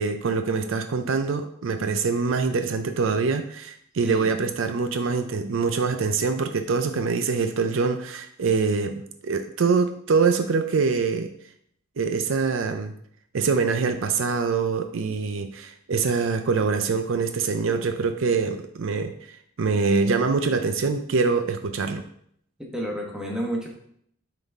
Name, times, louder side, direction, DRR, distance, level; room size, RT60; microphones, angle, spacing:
voice 1, 0.0-11.3 12.0-12.9 13.3-22.0, right 4 dB, 60° right, 7 dB, 0.4 m, -24 dB
voice 2, 22.7-23.7, right 1 dB, 5° right, -2 dB, 1.1 m, -30 dB
9.0 x 3.9 x 3.5 m, 0.69 s
head